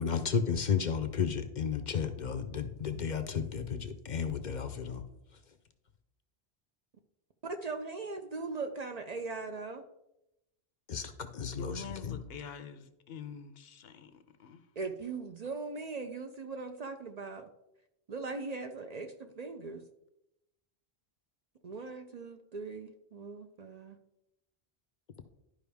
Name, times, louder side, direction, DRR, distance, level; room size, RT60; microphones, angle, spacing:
voice 1, 0.0-5.0 10.9-12.2, left 6 dB, 55° left, 9 dB, 0.6 m, -33 dB
voice 2, 7.4-9.8 14.8-17.5 18.1-19.8 21.6-24.0, right 4 dB, 50° right, 6 dB, 0.6 m, -40 dB
voice 3, 11.6-14.7, left 7 dB, 70° left, 10 dB, 0.9 m, -46 dB
11.5 x 5.1 x 3.4 m, 0.88 s
omnidirectional pair, 1.1 m